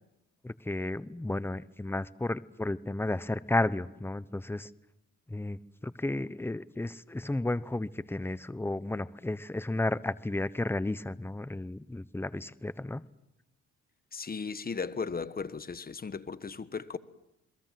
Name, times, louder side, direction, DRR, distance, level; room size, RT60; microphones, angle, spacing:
voice 1, 0.4-4.7 5.3-13.0, left 2 dB, 5° left, 0.9 m, -33 dB
voice 2, 14.1-17.0, left 5 dB, 30° left, 1.3 m, -36 dB
28.0 x 21.5 x 7.7 m
cardioid pair, 90°, 30 cm